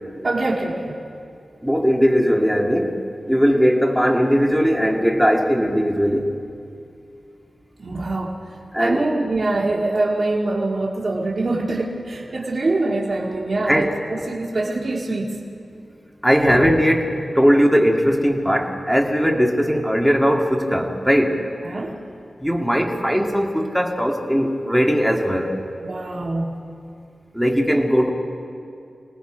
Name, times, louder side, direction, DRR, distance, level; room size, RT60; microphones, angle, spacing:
voice 1, 0.2-1.0 7.8-8.4 8.8-15.4 16.4-16.6 21.6-22.0 25.8-26.5, right 2 dB, 50° right, -3 dB, 2.2 m, -24 dB
voice 2, 1.6-3.0 3.3-6.3 8.7-9.0 13.7-13.9 16.2-21.4 22.4-25.5 27.3-28.1, equal, 5° right, 1 dB, 2.2 m, -19 dB
27.5 x 18.5 x 5.1 m, 2.4 s
wide cardioid pair, 75°, 0 cm